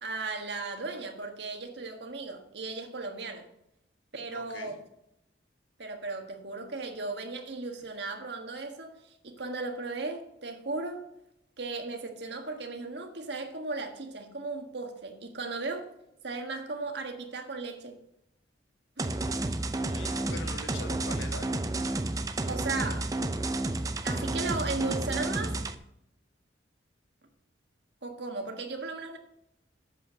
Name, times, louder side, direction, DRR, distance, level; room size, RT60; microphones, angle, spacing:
voice 1, 0.0-3.5 4.1-4.7 5.8-11.0 11.6-15.9 16.2-18.0 19.0-19.1 22.5-23.1 24.0-25.6 28.0-29.2, right 3 dB, 60° right, 1.5 m, -36 dB
voice 2, 4.3-4.7 19.9-21.5, left 2 dB, 80° left, 1.6 m, -42 dB
sound 1, 19.0-25.8, right 2 dB, 20° right, 0.5 m, -31 dB
7.8 x 7.6 x 6.1 m
head